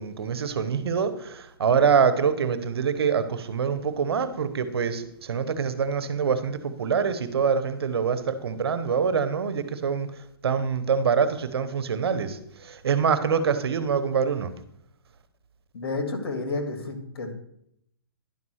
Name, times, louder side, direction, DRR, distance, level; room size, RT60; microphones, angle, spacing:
voice 1, 0.0-10.1 10.4-14.5, right 6 dB, 70° right, 12 dB, 1.1 m, -25 dB
voice 2, 15.7-17.3, left 3 dB, 70° left, 5 dB, 2.4 m, -30 dB
11.0 x 5.5 x 6.4 m, 0.75 s
hypercardioid pair, 150°, 13 cm